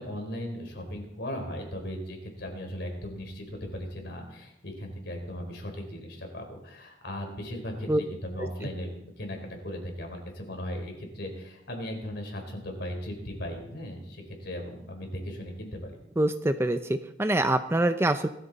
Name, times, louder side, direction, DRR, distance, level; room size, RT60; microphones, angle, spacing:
voice 1, 0.0-15.9, equal, 55° left, 3 dB, 4.0 m, -37 dB
voice 2, 16.2-18.3, right 1 dB, 15° right, 9 dB, 0.5 m, -25 dB
21.0 x 13.5 x 4.1 m, 0.82 s
head